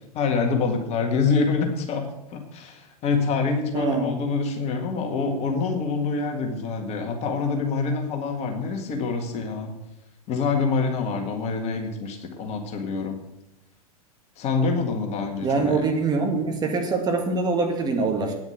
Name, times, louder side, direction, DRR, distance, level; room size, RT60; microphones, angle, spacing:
voice 1, 0.1-9.7 10.3-13.2 14.4-15.8, left 4 dB, 35° left, 4 dB, 1.9 m, -26 dB
voice 2, 3.7-4.2 15.4-18.3, right 3 dB, 20° right, 2 dB, 2.1 m, -24 dB
9.6 x 7.1 x 8.1 m, 0.87 s
hypercardioid pair, 105°, 20 cm